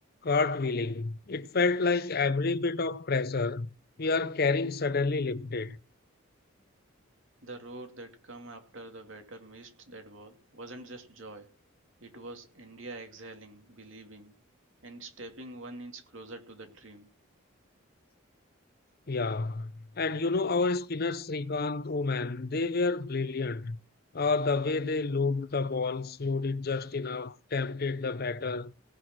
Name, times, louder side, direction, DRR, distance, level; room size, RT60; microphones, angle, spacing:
voice 1, 0.2-3.7 4.0-5.8 19.1-19.7 20.0-23.8 24.1-28.7, left 4 dB, 50° left, 0.7 m, -29 dB
voice 2, 7.4-11.6 12.0-14.3 14.8-17.1, right 2 dB, 65° right, 2.6 m, -45 dB
18.0 x 6.6 x 6.2 m
head